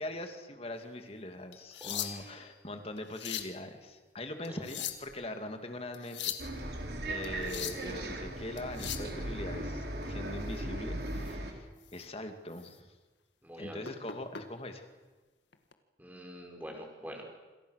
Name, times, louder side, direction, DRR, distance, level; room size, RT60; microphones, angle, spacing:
voice 1, 0.0-6.2 7.1-12.9 13.6-14.9, left 1 dB, 35° left, 6 dB, 2.7 m, -42 dB
sound 1, 1.5-2.4 3.0-3.6 4.4-5.2 5.9-6.5 7.2-7.9 8.6-9.1 11.2-11.3 11.8-12.1 12.5-12.7 13.8-14.4 15.5-15.7, left 11 dB, 80° left, 2.0 m, -39 dB
voice 2, 1.8-2.3 4.5-4.6 13.4-13.8 16.0-17.3, equal, 10° right, 1 dB, 5.2 m, -45 dB
Bus, 6.4-11.5, right 1 dB, 60° right, 4.1 m, -38 dB
28.0 x 27.0 x 6.7 m, 1.2 s
head